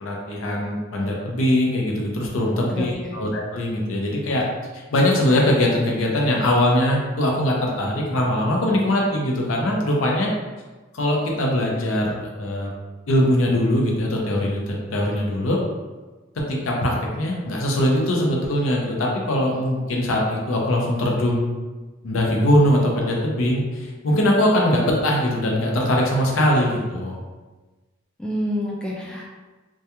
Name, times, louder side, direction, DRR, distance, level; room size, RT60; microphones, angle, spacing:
voice 1, 0.0-4.4 4.7-10.3 10.9-12.7 13.1-15.6 16.5-21.5 22.0-27.2, left 1 dB, 85° left, -1 dB, 0.5 m, -21 dB
voice 2, 2.7-3.2 28.2-29.3, equal, 5° left, -4 dB, 0.3 m, -28 dB
2.2 x 2.2 x 2.8 m, 1.3 s
head